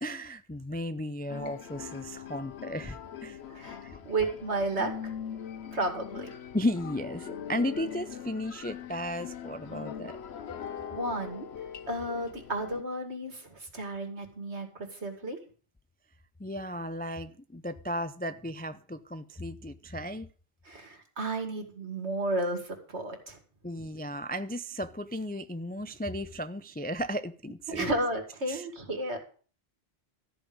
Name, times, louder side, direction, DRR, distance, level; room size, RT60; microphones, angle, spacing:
voice 1, 0.0-3.4 3.8-4.0 6.5-10.1 16.4-20.3 23.6-27.9 28.5-28.7, equal, 15° left, 0.3 m, -35 dB
sound 1, 1.3-12.8, left 8 dB, 70° left, 1.1 m, -41 dB
voice 2, 3.5-5.1 5.7-6.3 10.9-15.4 20.7-23.4 27.7-29.2, right 2 dB, 75° right, 2.6 m, -33 dB
13.5 x 5.4 x 8.7 m
omnidirectional pair, 1.1 m